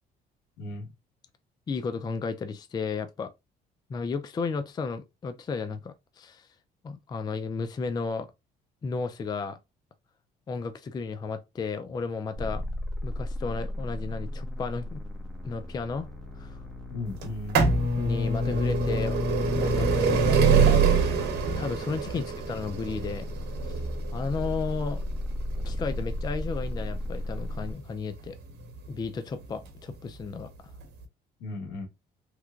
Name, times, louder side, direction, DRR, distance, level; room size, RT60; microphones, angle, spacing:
voice 1, 0.6-0.9 16.9-17.6 22.1-22.2 31.4-31.9, left 2 dB, 85° left, 1.4 m, -36 dB
voice 2, 1.7-3.3 3.9-6.5 6.8-8.3 8.8-9.6 10.5-12.6 13.0-15.0 15.4-16.1 16.4-16.6 18.0-19.2 19.6-21.3 21.6-23.3 23.7-23.8 24.1-25.0 25.7-28.4 28.9-30.7, left 4 dB, 25° left, 0.4 m, -33 dB
sound 1, 12.3-27.7, left 1 dB, ahead, 1.2 m, -36 dB
sound 2, 17.2-28.9 29.7-29.8 30.7-30.8 31.0-31.1, right 4 dB, 75° right, 0.9 m, -25 dB
3.2 x 3.1 x 2.4 m
cardioid pair, 110°, 17 cm